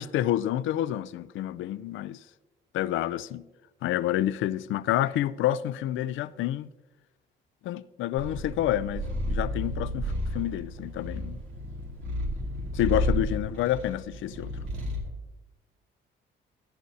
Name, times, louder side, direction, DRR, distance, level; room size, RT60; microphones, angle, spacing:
voice 1, 0.0-2.2 2.7-3.4 3.8-6.7 7.6-11.4 12.7-14.5, left 13 dB, 80° left, 0.4 m, -28 dB
Purr, 8.2-15.1, equal, 85° right, 1.9 m, -32 dB
14.5 x 10.5 x 2.8 m
cardioid pair, 90°, 20 cm